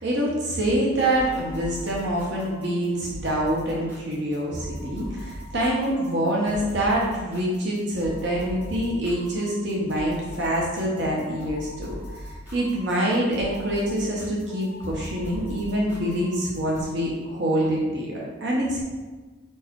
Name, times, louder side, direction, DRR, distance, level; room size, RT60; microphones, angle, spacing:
voice 1, 0.0-18.8, right 1 dB, 55° right, -3 dB, 1.1 m, -26 dB
sound 1, 1.1-16.8, equal, 10° right, 1.7 m, -40 dB
4.9 x 4.6 x 4.7 m, 1.3 s
head